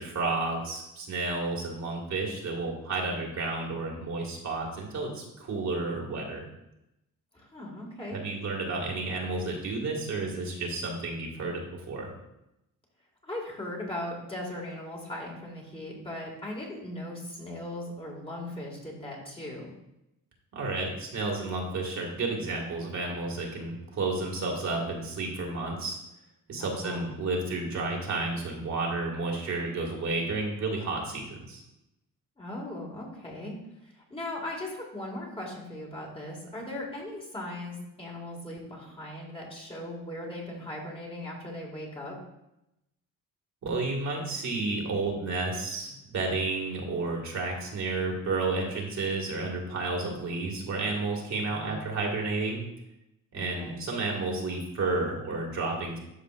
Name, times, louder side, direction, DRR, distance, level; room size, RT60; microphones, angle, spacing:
voice 1, 0.0-6.4 8.1-12.1 20.5-26.0 26.5-31.6 43.6-52.6 53.3-56.0, right 3 dB, 55° right, -1 dB, 2.0 m, -31 dB
voice 2, 7.3-8.2 13.2-19.7 26.6-27.2 32.4-33.5 33.8-42.1 51.4-51.8 53.4-53.8, left 1 dB, 15° left, -2 dB, 2.0 m, -38 dB
12.5 x 5.0 x 2.5 m, 0.87 s
cardioid pair, 110°, 34 cm